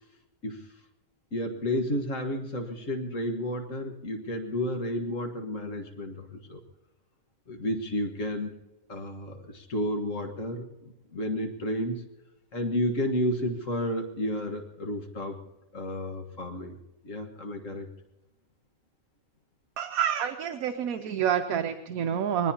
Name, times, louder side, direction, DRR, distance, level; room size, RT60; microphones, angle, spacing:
voice 1, 0.4-0.7 1.3-6.6 7.5-8.5 8.9-12.1 12.5-15.4 15.7-16.8 17.0-17.9, equal, 60° left, 3 dB, 1.9 m, -31 dB
voice 2, 19.8-22.5, right 9 dB, 70° right, 7 dB, 1.2 m, -28 dB
25.5 x 20.0 x 2.9 m, 1.0 s
omnidirectional pair, 1.6 m